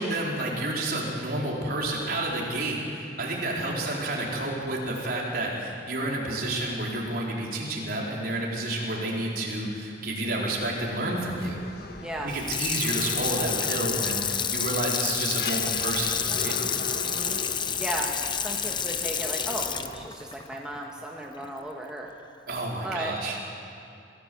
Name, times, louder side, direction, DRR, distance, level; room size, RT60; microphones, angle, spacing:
voice 1, 0.0-11.6 12.2-16.6 22.5-23.4, right 1 dB, 50° right, -3 dB, 4.7 m, -30 dB
voice 2, 3.5-4.0 12.0-12.3 17.0-17.4 17.8-22.1 22.8-23.1, right 1 dB, 5° right, -2 dB, 1.5 m, -35 dB
sound 1, 10.9-20.1, left 3 dB, 55° left, 1.6 m, -40 dB
Water tap faucet / Sink (filling or washing), 12.3-21.5 21.9-22.0, left 7 dB, 25° left, 0.7 m, -29 dB
26.5 x 16.5 x 8.0 m, 2.6 s
head